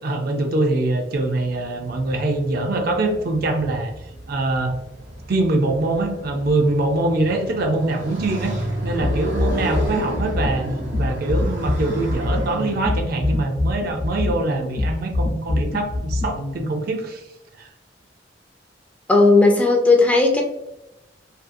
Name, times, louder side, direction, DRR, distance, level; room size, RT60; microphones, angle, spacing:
voice 1, 0.0-3.9 4.3-4.8 5.3-8.5 8.8-17.2 17.6-17.7, right 2 dB, 55° right, 4 dB, 0.4 m, -23 dB
Motorcycle, 1.0-13.4, right 1 dB, 80° right, 1.0 m, -32 dB
sound 1, 9.0-16.6, left 2 dB, 75° left, 0.6 m, -24 dB
voice 2, 19.1-20.4, left 3 dB, 10° left, 1 dB, 0.3 m, -15 dB
2.6 x 2.4 x 2.5 m, 0.91 s
head